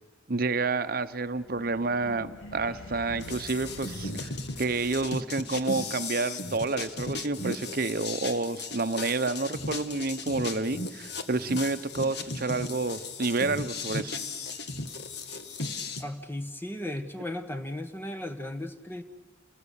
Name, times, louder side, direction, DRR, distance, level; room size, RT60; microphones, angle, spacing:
voice 1, 0.3-4.3 4.6-14.2, right 3 dB, 50° right, 11 dB, 0.9 m, -29 dB
sound 1, 1.2-5.5, left 1 dB, 85° left, 1.8 m, -46 dB
sound 2, 3.2-16.0, left 3 dB, 55° left, 1.4 m, -36 dB
voice 2, 16.0-19.0, left 1 dB, 10° left, 8 dB, 1.2 m, -36 dB
29.5 x 19.0 x 8.3 m, 1.2 s
head